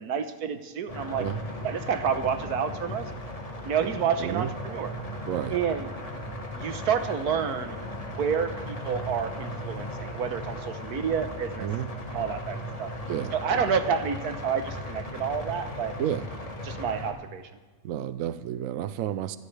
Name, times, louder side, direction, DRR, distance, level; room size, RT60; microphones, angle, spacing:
voice 1, 0.0-1.3 1.6-3.1 3.6-4.9 5.5-5.9 6.5-11.7 12.1-12.9 13.3-15.9 16.6-17.4, right 7 dB, 85° right, 9 dB, 1.5 m, -29 dB
sound 1, 0.9-17.1, left 1 dB, 25° left, 1.6 m, -37 dB
voice 2, 4.2-4.5 5.3-5.5 11.6-11.9 13.1-13.3 16.0-16.2 17.8-19.4, right 11 dB, 70° right, 13 dB, 0.9 m, -30 dB
24.0 x 12.5 x 3.3 m, 1.3 s
omnidirectional pair, 1.6 m